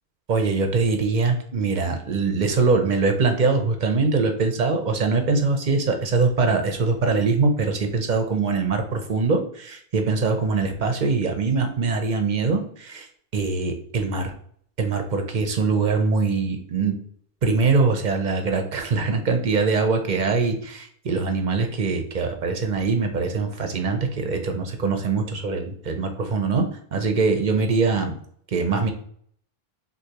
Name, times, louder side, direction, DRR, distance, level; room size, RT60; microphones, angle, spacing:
voice 1, 0.3-13.1 13.3-14.3 14.8-17.0 17.4-26.7 26.9-28.2 28.5-28.9, right 4 dB, 50° right, 5 dB, 0.8 m, -23 dB
6.4 x 2.7 x 2.9 m, 0.63 s
omnidirectional pair, 1.1 m